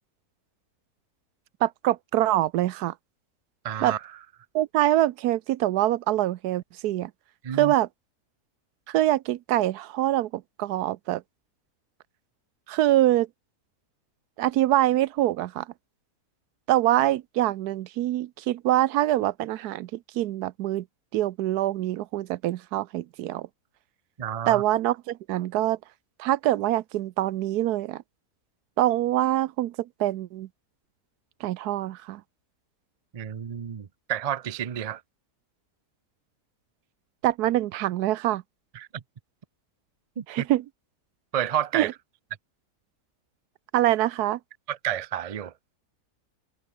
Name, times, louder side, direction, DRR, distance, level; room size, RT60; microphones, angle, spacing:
voice 1, 1.6-2.9 3.8-3.9 4.5-7.1 7.5-7.9 8.9-11.2 12.7-13.3 14.4-15.7 16.7-20.8 21.1-23.5 24.5-25.8 26.2-28.0 28.8-30.5 31.4-32.2 37.2-38.4 40.3-40.6 41.7-41.9 43.7-44.4, right 14 dB, 80° right, 1.2 m, -24 dB
voice 2, 3.6-4.0 7.4-7.7 24.2-24.6 33.1-35.0 38.7-39.0 40.2-40.5 41.3-41.9 44.7-45.5, right 10 dB, 65° right, 0.3 m, -30 dB
omnidirectional pair, 1.7 m